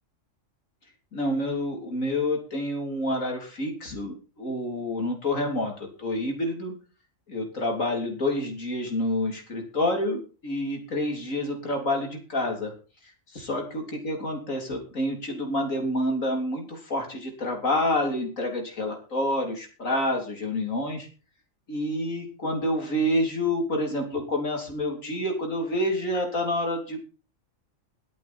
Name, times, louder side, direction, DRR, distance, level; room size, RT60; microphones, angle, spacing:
voice 1, 1.1-6.8 7.3-12.7 13.4-21.1 21.7-27.1, left 1 dB, 85° left, 3 dB, 3.8 m, -28 dB
23.0 x 8.4 x 4.4 m, 0.36 s
omnidirectional pair, 1.4 m